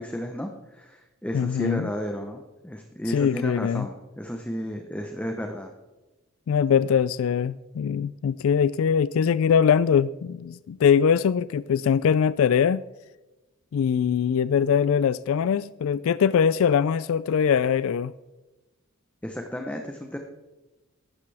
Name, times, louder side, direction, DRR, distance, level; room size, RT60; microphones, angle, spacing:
voice 1, 0.0-5.7 19.2-20.2, equal, 5° left, 0.9 m, -33 dB
voice 2, 1.3-1.9 3.1-3.9 6.5-12.8 13.7-18.1, left 7 dB, 75° left, 0.3 m, -22 dB
15.0 x 11.5 x 3.4 m
head